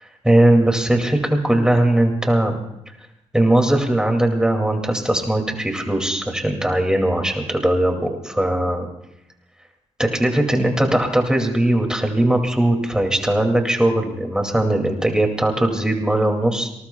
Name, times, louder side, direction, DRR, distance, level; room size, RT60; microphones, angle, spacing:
voice 1, 0.2-2.6 3.3-8.9 10.0-16.8, right 1 dB, 5° right, 3 dB, 2.4 m, -19 dB
27.0 x 20.0 x 2.3 m, 0.84 s
cardioid pair, 100°, 12 cm